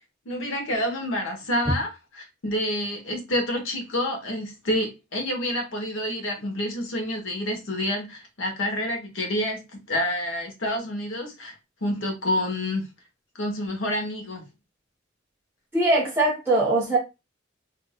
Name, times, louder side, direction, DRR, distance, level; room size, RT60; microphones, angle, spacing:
voice 1, 0.2-11.6 11.8-12.8 13.4-14.5, left 1 dB, 80° left, 1.0 m, -28 dB
voice 2, 15.7-17.0, right 2 dB, 10° right, 0.6 m, -21 dB
3.7 x 2.5 x 2.2 m
head